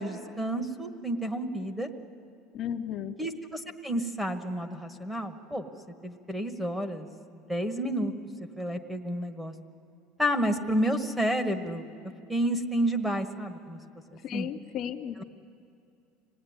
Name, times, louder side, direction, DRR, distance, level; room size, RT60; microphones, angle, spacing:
voice 1, 0.0-1.9 3.2-5.7 6.0-7.1 7.3-8.1 8.6-9.5 10.2-11.9 12.3-13.8 14.3-14.5, equal, 5° right, 8 dB, 1.3 m, -30 dB
voice 2, 2.5-3.2 14.2-15.2, left 9 dB, 45° left, 6 dB, 0.7 m, -34 dB
24.5 x 18.5 x 9.6 m, 2.5 s
cardioid pair, 140°, 0 cm